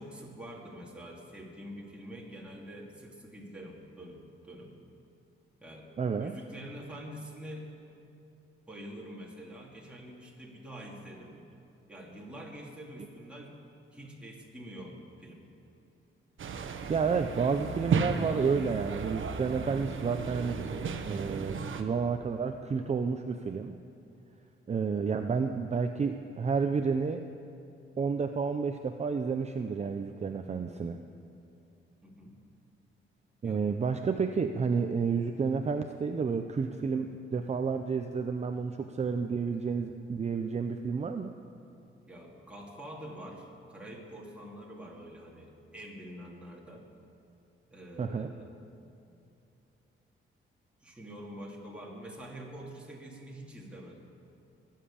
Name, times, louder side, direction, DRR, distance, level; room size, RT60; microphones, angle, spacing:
voice 1, 0.0-4.2 4.5-4.7 5.6-5.9 6.2-7.7 8.7-11.4 11.9-13.5 13.9-15.4 32.0-32.4 33.4-33.6 42.1-46.9 47.7-48.6 50.8-54.1, equal, 5° right, -3 dB, 2.7 m, -46 dB
voice 2, 6.0-6.3 16.9-20.6 21.0-23.7 24.7-27.2 28.0-31.0 33.4-41.3 48.0-48.3, right 5 dB, 30° right, 6 dB, 0.6 m, -30 dB
sound 1, 16.4-21.8, right 5 dB, 70° right, 1.1 m, -34 dB
22.0 x 7.4 x 8.6 m, 2.8 s
cardioid pair, 115°, 21 cm